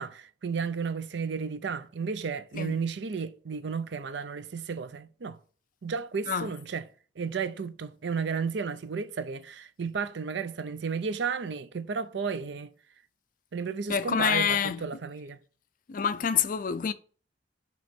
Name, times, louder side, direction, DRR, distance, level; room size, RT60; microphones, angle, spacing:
voice 1, 0.0-5.4 5.8-6.9 7.2-12.7 13.5-15.4, right 5 dB, 65° right, 0.5 m, -33 dB
voice 2, 13.9-14.8 15.9-16.9, left 7 dB, 45° left, 0.4 m, -27 dB
7.9 x 3.0 x 5.1 m
head